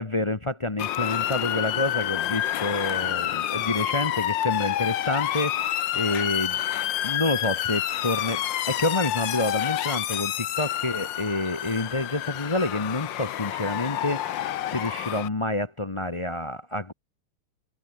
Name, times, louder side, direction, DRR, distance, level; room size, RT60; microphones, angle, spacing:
voice 1, 0.0-6.6 7.0-8.4 8.7-16.9, left 2 dB, 30° left, 0.5 m, -28 dB
Motor vehicle (road) / Siren, 0.8-15.3, left 12 dB, 65° left, 1.5 m, -28 dB
omnidirectional pair, 2.4 m